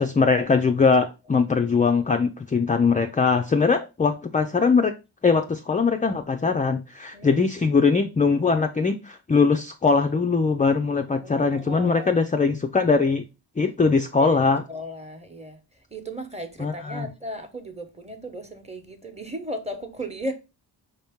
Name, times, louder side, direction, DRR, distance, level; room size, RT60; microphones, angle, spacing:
voice 1, 0.0-4.9 5.2-13.2 13.6-14.6 16.6-17.1, left 4 dB, 20° left, 0.3 m, -21 dB
voice 2, 7.1-7.5 11.2-12.2 14.2-14.4 14.7-15.6 15.9-20.3, right 1 dB, 15° right, 1.0 m, -36 dB
5.3 x 2.8 x 3.5 m
cardioid pair, 70°, 45 cm